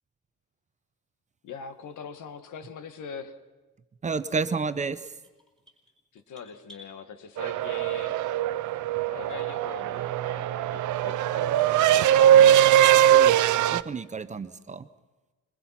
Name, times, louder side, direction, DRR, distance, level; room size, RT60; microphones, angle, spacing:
voice 1, 1.4-3.4 6.1-8.2 9.0-12.8, left 6 dB, 80° left, 9 dB, 1.7 m, -42 dB
voice 2, 4.0-5.0 13.1-13.4 13.7-14.9, right 4 dB, 25° right, 12 dB, 0.6 m, -31 dB
sound 1, 5.0-6.9, left 1 dB, ahead, 4.3 m, -53 dB
sound 2, 7.4-13.8, right 11 dB, 80° right, 0.6 m, -21 dB
22.5 x 20.5 x 5.8 m, 1.2 s
cardioid pair, 170°, 30 cm